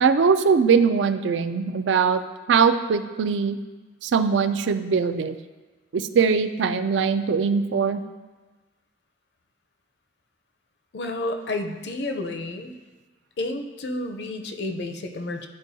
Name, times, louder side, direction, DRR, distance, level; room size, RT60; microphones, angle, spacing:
voice 1, 0.0-2.2 2.5-3.6 4.0-5.4 5.9-8.0, right 5 dB, 80° right, 10 dB, 0.4 m, -21 dB
voice 2, 10.9-12.8 13.4-15.5, left 2 dB, 65° left, 6 dB, 0.6 m, -30 dB
10.5 x 4.4 x 2.7 m, 1.3 s
head